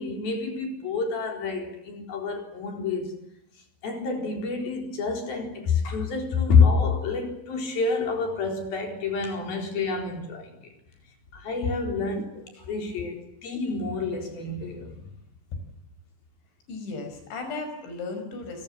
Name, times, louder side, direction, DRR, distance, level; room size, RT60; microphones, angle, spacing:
voice 1, 0.0-3.2 3.8-10.5 11.3-15.1, left 4 dB, 55° left, 5.8 m, -27 dB
voice 2, 16.7-18.6, left 3 dB, 75° left, 8.0 m, -35 dB
29.5 x 19.5 x 7.6 m
omnidirectional pair, 5.3 m